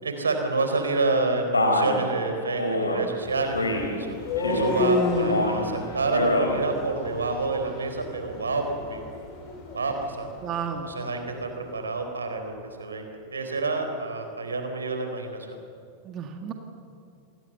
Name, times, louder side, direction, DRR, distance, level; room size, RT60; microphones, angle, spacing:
voice 1, 0.0-4.2 4.4-9.0 9.7-10.3 10.8-15.6, right 3 dB, 75° right, 5 dB, 4.1 m, -28 dB
Male speech man speaking, 1.5-2.0 2.6-3.0 3.6-3.9 4.4-4.8 5.2-5.6 6.0-6.5, left 2 dB, 80° left, 3.4 m, -25 dB
sound 1, 3.2-11.2, left 2 dB, 40° left, 6.8 m, -31 dB
voice 2, 10.4-10.9 16.0-16.5, right 7 dB, 30° right, 4 dB, 2.0 m, -32 dB
28.0 x 21.5 x 6.9 m, 2.4 s
figure-of-eight pair, 90°, 0 cm